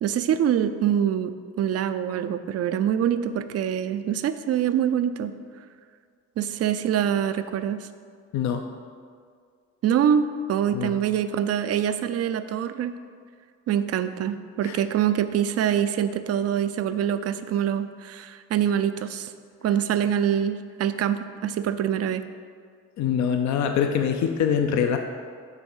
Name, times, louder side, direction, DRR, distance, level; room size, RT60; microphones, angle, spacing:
voice 1, 0.0-5.3 6.4-7.9 9.8-13.0 13.7-19.3 19.6-22.2, right 9 dB, 55° right, 11 dB, 0.5 m, -25 dB
voice 2, 8.3-8.6 10.7-11.0 14.6-14.8 23.0-25.0, left 7 dB, 65° left, 5 dB, 0.6 m, -24 dB
9.0 x 3.5 x 5.5 m, 2.1 s
cardioid pair, 90°, 30 cm